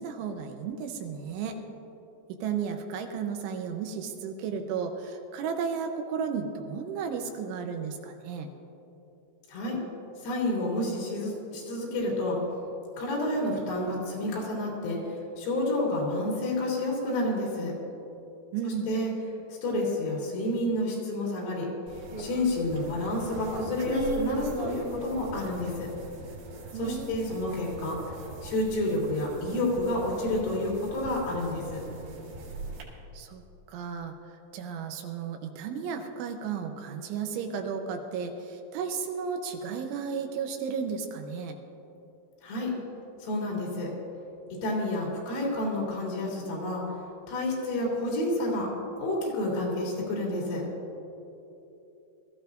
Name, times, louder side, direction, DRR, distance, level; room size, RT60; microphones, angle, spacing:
voice 1, 0.0-1.6 2.4-8.5 18.5-18.9 26.7-27.2 33.1-41.6, right 6 dB, 80° right, 4 dB, 3.2 m, -34 dB
voice 2, 9.5-9.8 10.2-12.4 13.0-17.7 18.9-19.1 19.6-21.7 22.2-25.9 26.8-28.1 28.4-31.8 42.4-42.7 43.2-43.9 44.5-46.9 47.3-48.7 49.0-50.6, left 1 dB, 80° left, -4 dB, 5.7 m, -29 dB
sound 1, 21.9-32.8, right 2 dB, 60° right, 4.0 m, -39 dB
23.0 x 14.5 x 2.6 m, 2.9 s
omnidirectional pair, 5.7 m